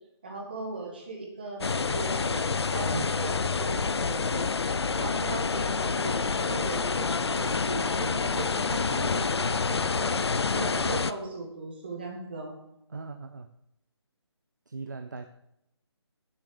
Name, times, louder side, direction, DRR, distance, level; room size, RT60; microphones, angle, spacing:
voice 1, 0.2-2.4 2.7-4.5 4.9-12.5, right 2 dB, 20° right, 0 dB, 1.8 m, -38 dB
sound 1, 1.6-11.1, left 4 dB, 65° left, 0.6 m, -28 dB
sound 2, 5.0-10.0, left 3 dB, 45° left, 0.9 m, -45 dB
voice 2, 10.5-11.0 12.9-13.5 14.7-15.2, right 4 dB, 40° right, 7 dB, 0.6 m, -39 dB
10.0 x 7.4 x 6.8 m, 0.81 s
hypercardioid pair, 180°, 15 cm